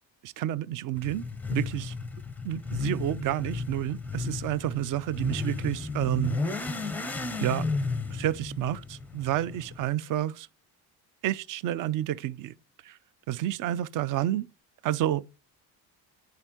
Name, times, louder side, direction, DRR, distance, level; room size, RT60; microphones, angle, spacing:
voice 1, 0.2-1.2 1.5-1.9 2.4-6.4 7.4-7.7 8.1-10.5 11.2-12.5 12.8-13.0 13.3-14.5 14.8-15.2, right 13 dB, 50° right, 0.5 m, -30 dB
Motorcycle / Accelerating revving vroom, 1.0-9.8, left 3 dB, 5° left, 0.5 m, -34 dB
9.7 x 4.6 x 3.6 m
cardioid pair, 125°, 42 cm